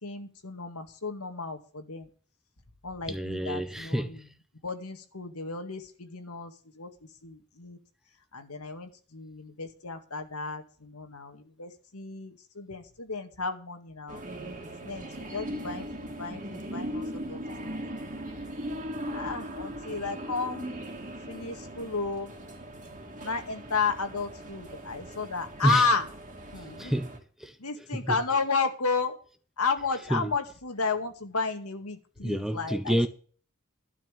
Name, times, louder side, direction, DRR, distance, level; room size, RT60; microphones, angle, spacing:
voice 1, 0.0-2.1 2.8-4.2 4.6-6.9 7.2-7.8 8.3-14.2 14.8-17.8 18.4-18.5 19.1-20.8 21.3-22.4 23.2-26.1 26.5-26.9 27.6-29.2 29.6-33.1, left 4 dB, 75° left, 2.1 m, -33 dB
voice 2, 3.1-4.2 25.6-25.9 26.6-27.6 28.0-28.1 30.1-30.3 32.2-33.1, equal, ahead, 0.9 m, -29 dB
sound 1, 14.1-27.2, equal, 35° right, 2.6 m, -39 dB
12.0 x 6.0 x 8.8 m
head